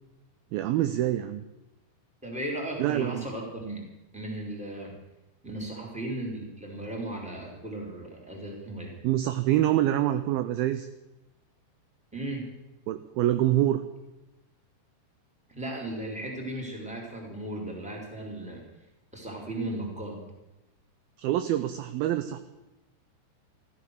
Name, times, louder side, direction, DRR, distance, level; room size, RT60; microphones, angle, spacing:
voice 1, 0.5-1.4 2.8-3.2 9.0-10.9 12.9-13.8 21.2-22.4, right 13 dB, 80° right, 11 dB, 2.2 m, -26 dB
voice 2, 2.2-3.9 4.1-5.0 5.4-8.9 12.1-12.5 15.5-18.6 19.1-20.2, right 1 dB, ahead, -1 dB, 3.0 m, -36 dB
14.0 x 14.0 x 6.6 m, 0.97 s
omnidirectional pair, 4.9 m